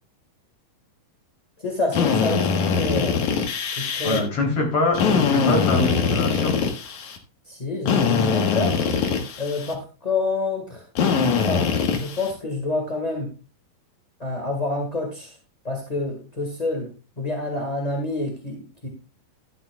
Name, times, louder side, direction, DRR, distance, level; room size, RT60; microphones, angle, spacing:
voice 1, 1.6-3.2 3.7-4.2 7.5-8.8 9.4-10.8 11.5-13.3 14.2-15.4 15.6-16.9 17.2-18.9, left 3 dB, 25° left, 1 dB, 0.9 m, -27 dB
Drill, 1.9-4.2 4.9-7.2 7.9-9.8 11.0-12.3, left 6 dB, 70° left, 2.7 m, -22 dB
voice 2, 4.0-6.6, left 2 dB, 45° left, 0 dB, 4.2 m, -24 dB
12.0 x 11.5 x 2.3 m, 0.33 s
omnidirectional pair, 3.8 m